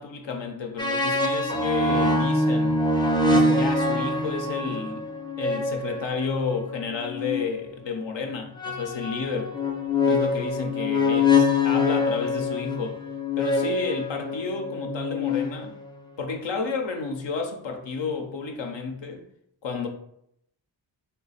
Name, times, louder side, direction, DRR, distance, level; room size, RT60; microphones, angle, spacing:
voice 1, 0.0-2.8 3.3-5.1 5.4-9.5 10.0-13.0 13.4-15.7 16.2-19.3 19.6-19.9, left 4 dB, 70° left, 3 dB, 0.6 m, -31 dB
sound 1, 0.8-7.5 8.6-15.9, left 3 dB, 10° left, 0.5 m, -25 dB
3.2 x 2.2 x 3.9 m, 0.74 s
cardioid pair, 45°, 46 cm